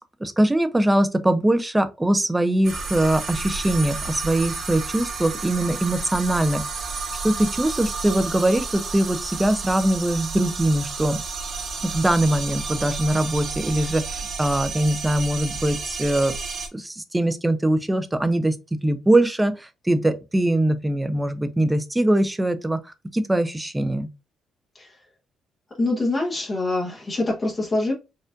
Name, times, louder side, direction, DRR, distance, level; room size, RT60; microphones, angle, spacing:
voice 1, 0.2-6.9 7.2-11.2 11.8-16.3 16.7-24.1, right 1 dB, 10° right, 0.5 m, -22 dB
sound 1, 2.6-16.7, right 4 dB, 55° right, 1.1 m, -31 dB
voice 2, 25.8-27.9, left 2 dB, 30° left, 0.9 m, -24 dB
4.4 x 2.4 x 2.5 m
cardioid pair, 90°, 0 cm